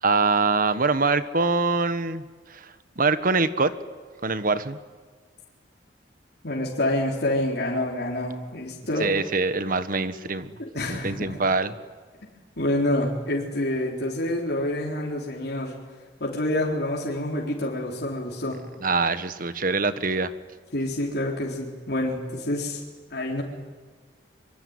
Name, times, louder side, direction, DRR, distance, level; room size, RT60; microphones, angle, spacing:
voice 1, 0.0-3.7 4.2-4.8 9.0-10.5 10.9-11.7 18.8-20.3, right 3 dB, 50° right, 12 dB, 1.4 m, -24 dB
voice 2, 6.4-9.1 10.6-11.4 12.6-15.7 16.2-18.6 20.7-22.8 23.1-23.4, left 1 dB, 65° left, -2 dB, 3.9 m, -27 dB
25.5 x 24.0 x 9.7 m, 1.5 s
head